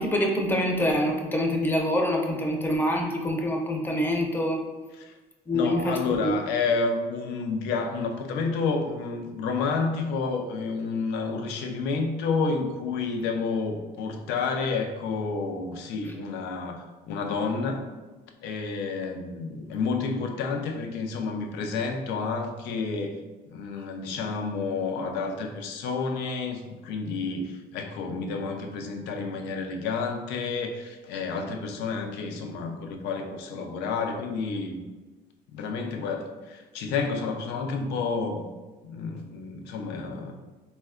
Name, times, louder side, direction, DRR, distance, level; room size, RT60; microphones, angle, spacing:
voice 1, 0.0-4.6 5.5-6.0 6.2-6.3 16.0-16.1, left 1 dB, 10° left, 1 dB, 0.5 m, -25 dB
voice 2, 5.5-17.9 18.4-23.1 23.5-34.8 35.5-38.4 38.8-40.4, left 4 dB, 85° left, 4 dB, 0.4 m, -30 dB
3.5 x 2.1 x 2.3 m, 1.2 s
cardioid pair, 110°, 17 cm